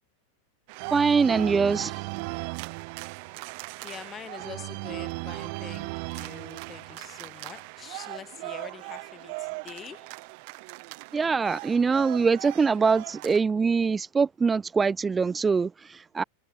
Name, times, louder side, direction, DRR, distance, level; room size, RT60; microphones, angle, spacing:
sound 1, 0.7-13.4, right 33 dB, 45° right, 2.5 m, -37 dB
voice 1, 0.9-2.1 11.1-16.2, right 5 dB, 15° right, 0.3 m, -23 dB
voice 2, 3.8-10.1, left 8 dB, 25° left, 7.8 m, -45 dB
figure-of-eight pair, 90°, 0 cm